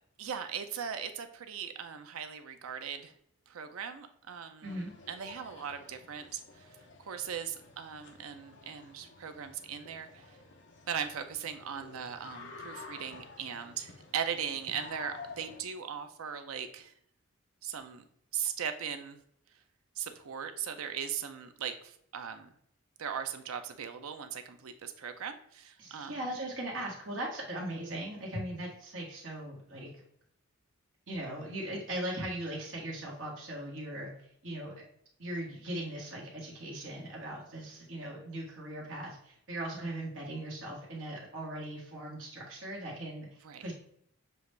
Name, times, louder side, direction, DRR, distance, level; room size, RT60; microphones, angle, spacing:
voice 1, 0.2-3.1 3.5-10.4 10.9-16.9 17.6-18.0 18.3-19.2 20.0-22.5 23.0-26.2 43.4-43.7, right 8 dB, 80° right, 8 dB, 0.5 m, -39 dB
sound 1, 4.6-15.6, left 4 dB, 55° left, 0.7 m, -51 dB
voice 2, 4.6-4.9 25.8-29.9 31.1-34.1 34.4-34.7 35.2-43.3 43.6-43.7, right 1 dB, 60° right, -3 dB, 1.4 m, -39 dB
6.8 x 2.4 x 3.2 m, 0.68 s
head